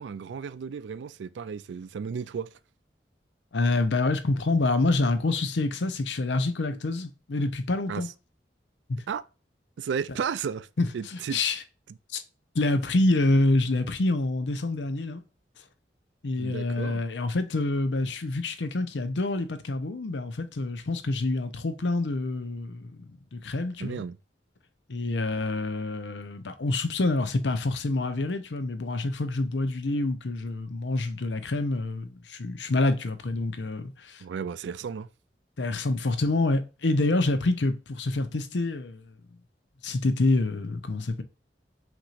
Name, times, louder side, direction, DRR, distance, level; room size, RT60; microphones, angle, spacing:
voice 1, 0.0-2.5 7.9-8.0 9.1-9.2 9.8-10.7 10.9-11.4 16.4-17.0 23.8-24.2 34.2-35.1, right 6 dB, 80° right, 0.3 m, -33 dB
voice 2, 3.5-8.1 8.9-9.0 10.8-11.6 12.1-12.2 12.5-15.2 16.2-24.0 24.9-34.2 35.6-39.0 39.8-41.2, left 2 dB, 85° left, 0.7 m, -27 dB
5.9 x 3.0 x 2.5 m
head